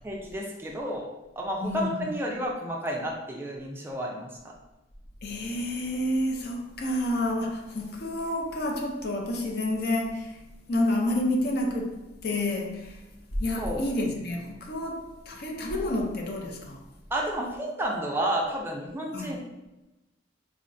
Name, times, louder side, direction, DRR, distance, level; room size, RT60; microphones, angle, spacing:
voice 1, 0.0-1.1 1.4-4.3 13.6-13.8 17.1-19.5, right 1 dB, 15° right, 0.4 m, -31 dB
voice 2, 1.6-2.1 5.2-10.4 10.7-13.0 13.4-16.8 19.1-19.4, left 1 dB, 60° left, 0.5 m, -29 dB
3.7 x 2.1 x 2.6 m
head